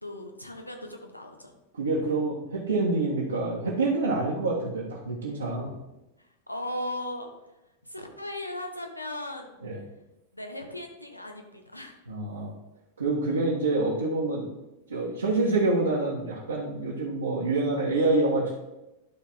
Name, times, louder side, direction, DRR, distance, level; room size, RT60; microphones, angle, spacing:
voice 1, 0.0-1.5 5.7-5.8 6.5-7.3 7.8-9.5 10.3-12.0, left 1 dB, 85° left, 3 dB, 1.0 m, -37 dB
voice 2, 1.8-5.7 9.6-9.8 12.1-12.5 13.0-14.5 14.9-18.5, right 2 dB, 75° right, -6 dB, 1.5 m, -27 dB
11.5 x 4.0 x 4.4 m, 0.96 s
figure-of-eight pair, 90°, 0 cm